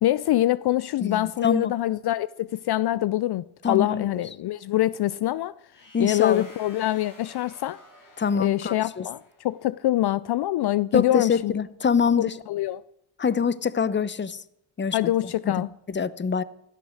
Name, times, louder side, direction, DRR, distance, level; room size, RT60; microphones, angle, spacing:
voice 1, 0.0-5.5 6.0-7.8 8.4-11.5 12.2-12.8 14.9-15.7, left 14 dB, 60° left, 0.5 m, -25 dB
voice 2, 1.0-1.7 3.6-4.1 5.9-6.5 8.2-9.0 10.9-12.3 13.2-14.4 14.8-15.0 15.4-16.4, left 6 dB, 25° left, 0.8 m, -25 dB
sound 1, 5.7-9.6, left 2 dB, 45° left, 7.1 m, -51 dB
17.0 x 11.5 x 6.4 m
cardioid pair, 80°, 45 cm